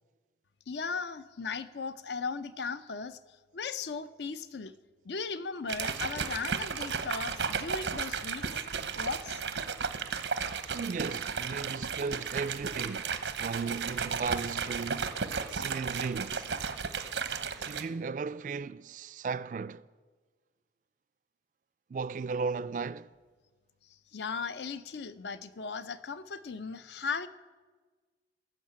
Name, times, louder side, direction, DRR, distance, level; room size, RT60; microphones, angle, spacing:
voice 1, 0.7-3.2 3.5-4.7 5.0-8.6 8.9-9.4 24.1-27.3, left 5 dB, 80° left, 0.6 m, -37 dB
sound 1, 5.7-17.8, right 5 dB, 90° right, 0.9 m, -34 dB
voice 2, 10.7-15.2 15.5-16.6 17.6-19.9 21.9-23.1, right 5 dB, 45° right, 0.3 m, -36 dB
15.5 x 6.5 x 8.6 m
head